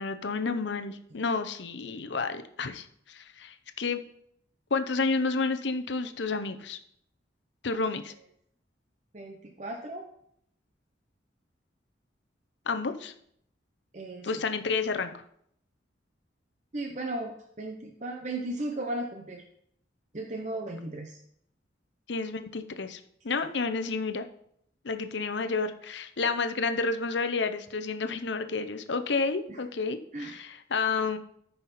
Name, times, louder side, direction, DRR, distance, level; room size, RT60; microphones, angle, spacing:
voice 1, 0.0-4.0 4.7-6.8 7.6-8.1 12.7-13.1 14.2-15.2 22.1-24.3 24.8-31.2, left 4 dB, 70° left, 8 dB, 0.7 m, -30 dB
voice 2, 9.1-10.1 13.9-14.4 16.7-19.4 20.1-21.2 29.5-29.6 30.1-30.4, right 1 dB, 40° right, 2 dB, 0.8 m, -36 dB
14.0 x 5.5 x 4.2 m, 0.72 s
head